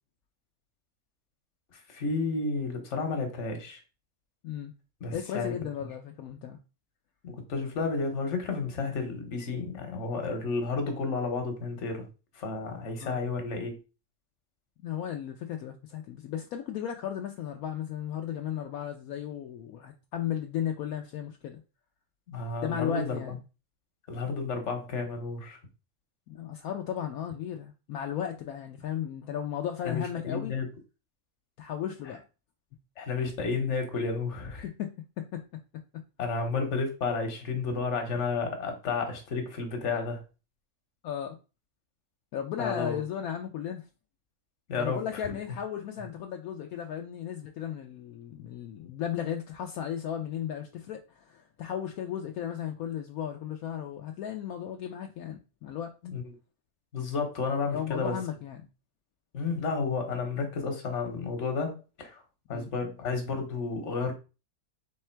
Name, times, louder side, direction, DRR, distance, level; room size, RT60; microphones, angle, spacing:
voice 1, 1.7-3.8 5.0-5.5 7.2-12.1 12.3-13.8 22.3-23.3 24.1-25.6 29.8-30.7 32.0-32.1 33.0-34.7 36.2-40.2 42.6-43.0 44.7-45.0 56.0-56.3 56.9-58.2 59.3-62.2 62.5-64.1, left 4 dB, 55° left, 1.4 m, -31 dB
voice 2, 5.1-6.6 13.0-13.2 14.8-21.6 22.6-23.3 26.3-30.5 31.6-32.2 34.6-34.9 35.2-35.4 41.0-41.4 42.3-43.8 44.8-55.9 57.7-58.6 62.5-62.7, left 9 dB, 80° left, 1.0 m, -35 dB
3.7 x 3.2 x 4.4 m
omnidirectional pair, 1.5 m